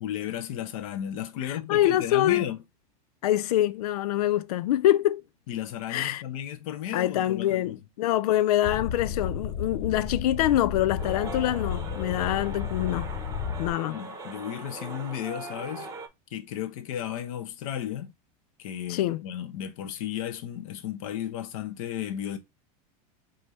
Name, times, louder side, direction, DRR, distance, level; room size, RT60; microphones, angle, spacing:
voice 1, 0.0-2.6 5.5-7.8 13.7-15.9 16.3-18.1 18.6-22.4, left 10 dB, 65° left, 1.1 m, -34 dB
voice 2, 1.4-2.5 3.2-5.2 5.9-6.2 6.9-13.1 13.6-14.0 18.9-19.2, left 13 dB, 90° left, 0.4 m, -25 dB
sound 1, 8.6-13.7, left 7 dB, 25° left, 0.5 m, -33 dB
sound 2, 11.0-16.1, right 3 dB, 15° right, 0.8 m, -40 dB
5.4 x 2.8 x 3.1 m
supercardioid pair, 160°, 19 cm